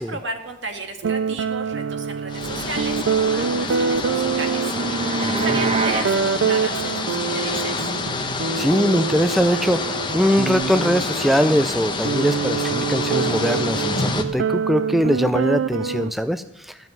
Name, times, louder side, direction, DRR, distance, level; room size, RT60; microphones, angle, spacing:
voice 1, 0.0-4.7 5.2-7.9, right 3 dB, 70° right, 5 dB, 1.9 m, -34 dB
sound 1, 1.0-16.1, right 6 dB, 85° right, 0.4 m, -25 dB
sound 2, 2.3-14.2, left 3 dB, 25° left, 1.0 m, -28 dB
sound 3, 3.5-6.1, right 3 dB, 30° right, 1.1 m, -26 dB
voice 2, 5.2-5.7 8.5-16.8, equal, ahead, 11 dB, 0.4 m, -22 dB
14.0 x 5.8 x 9.1 m, 0.79 s
head